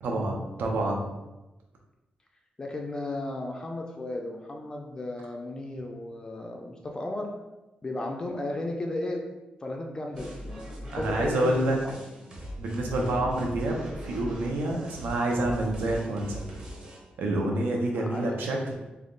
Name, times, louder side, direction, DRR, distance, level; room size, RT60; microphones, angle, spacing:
voice 1, 0.0-1.1 10.9-11.8 12.6-16.4 17.2-18.7, right 1 dB, 80° right, 0 dB, 0.7 m, -28 dB
voice 2, 2.6-7.3 7.8-9.3 9.6-11.9 17.9-18.4, left 1 dB, 25° left, 1 dB, 0.4 m, -34 dB
sound 1, 10.1-17.0, equal, 35° right, 0.8 m, -40 dB
3.4 x 2.3 x 3.8 m, 1.0 s
wide cardioid pair, 165°, 3 cm